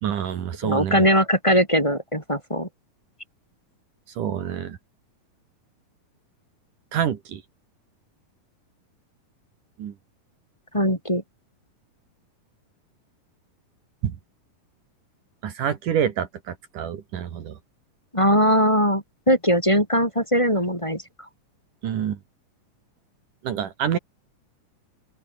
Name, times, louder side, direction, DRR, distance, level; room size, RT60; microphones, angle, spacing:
voice 1, 0.0-1.0 4.2-4.8 6.9-7.4 9.8-9.9 14.0-14.2 15.4-17.6 21.8-22.2 23.4-24.0, right 9 dB, 65° right, 3.3 m, -27 dB
voice 2, 0.6-2.7 10.7-11.2 18.1-21.0, equal, 10° left, 5.3 m, -20 dB
open air
omnidirectional pair, 4.0 m